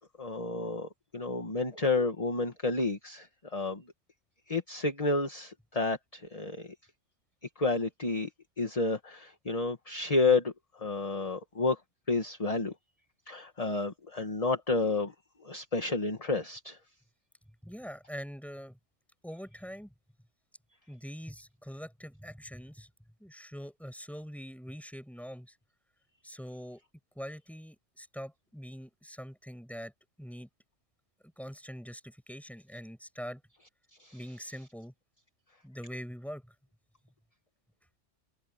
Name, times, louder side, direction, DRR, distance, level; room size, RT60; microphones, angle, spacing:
voice 1, 0.2-3.3 3.5-3.8 4.5-6.7 7.6-8.3 8.6-10.5 10.8-11.8 12.1-12.7 13.3-15.1 15.4-16.8 34.0-34.1, left 3 dB, 30° left, 1.7 m, -30 dB
voice 2, 17.6-18.8 19.2-19.9 20.9-22.9 23.2-25.5 26.2-26.8 27.1-29.9 30.2-30.5 31.4-33.4 34.1-34.9 35.6-36.5, equal, ahead, 6.8 m, -43 dB
open air
omnidirectional pair, 1.3 m